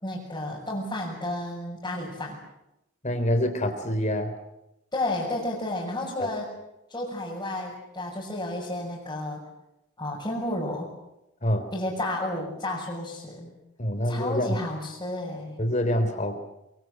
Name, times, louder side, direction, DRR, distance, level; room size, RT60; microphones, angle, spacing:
voice 1, 0.0-2.4 4.9-6.5 6.9-9.4 10.0-10.9 11.7-13.5 14.0-15.6, left 1 dB, 20° left, -7 dB, 6.3 m, -32 dB
voice 2, 3.0-4.3 6.2-6.3 11.4-11.7 13.8-14.6 15.6-16.4, equal, 35° left, 7 dB, 3.6 m, -26 dB
24.0 x 23.0 x 7.9 m, 0.89 s
head